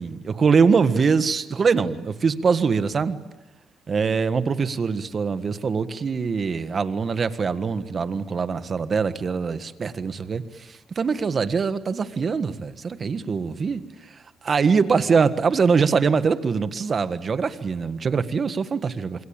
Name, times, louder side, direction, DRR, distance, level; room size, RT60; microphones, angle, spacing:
voice 1, 0.0-3.2 3.9-13.8 14.4-19.2, right 5 dB, 40° right, 1.5 m, -23 dB
27.5 x 23.0 x 8.8 m
cardioid pair, 90°, 0 cm